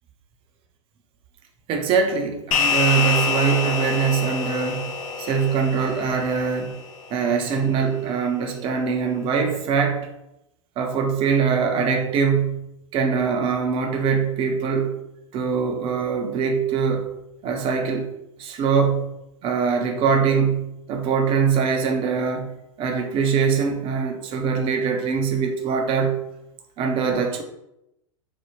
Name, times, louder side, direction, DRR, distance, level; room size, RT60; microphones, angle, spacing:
voice 1, 1.7-6.8 7.1-10.1 10.8-12.6 12.9-15.0 15.3-17.1 17.4-18.1 18.4-19.1 19.4-22.5 22.8-26.2 26.8-27.4, right 6 dB, 30° right, 5 dB, 0.5 m, -22 dB
sound 1, 2.5-7.2, left 5 dB, 75° left, 0.6 m, -26 dB
3.2 x 2.0 x 2.9 m, 0.85 s
figure-of-eight pair, 95°, 17 cm